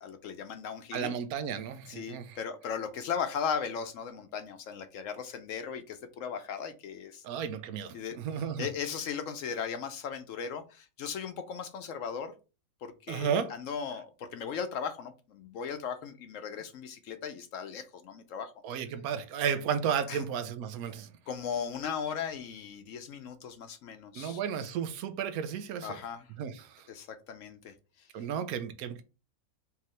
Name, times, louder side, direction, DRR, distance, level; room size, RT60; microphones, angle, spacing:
voice 1, 0.0-1.1 1.9-7.2 7.9-8.2 8.6-12.3 12.8-18.5 20.1-20.2 21.3-24.4 25.8-26.2 26.9-27.7, left 7 dB, 70° left, 0.9 m, -37 dB
voice 2, 0.9-2.4 7.2-8.7 13.1-13.5 18.6-21.1 24.1-26.0 26.4-26.9 28.1-29.0, right 8 dB, 85° right, 1.1 m, -33 dB
4.7 x 2.9 x 3.1 m
omnidirectional pair, 1.5 m